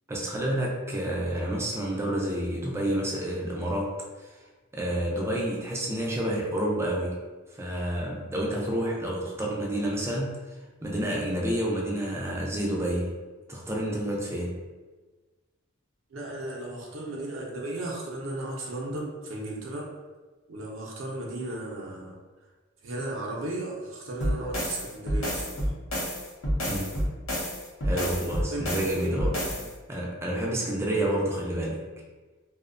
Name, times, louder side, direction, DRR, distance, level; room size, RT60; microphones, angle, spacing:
voice 1, 0.1-4.3 4.7-7.2 7.5-10.4 10.8-13.2 13.5-14.7 26.7-27.1 27.8-29.4 29.9-31.9, right 1 dB, 10° right, -3 dB, 0.3 m, -29 dB
voice 2, 16.1-19.9 20.5-22.2 22.8-25.7 28.5-29.7, right 2 dB, 70° right, -3 dB, 0.5 m, -35 dB
sound 1, 24.2-29.7, equal, 80° left, 0.6 m, -29 dB
2.6 x 2.0 x 2.5 m, 1.3 s
head